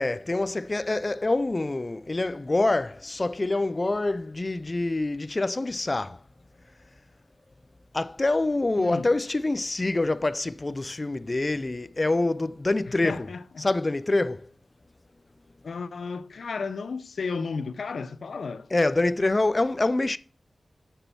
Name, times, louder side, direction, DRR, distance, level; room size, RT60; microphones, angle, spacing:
voice 1, 0.0-6.2 7.9-13.3 13.6-14.5 18.7-20.2, left 2 dB, 30° left, 0.4 m, -26 dB
voice 2, 8.8-9.1 13.0-13.7 15.6-18.7, left 4 dB, 80° left, 0.5 m, -33 dB
6.6 x 6.1 x 6.0 m
wide cardioid pair, 110°, 0 cm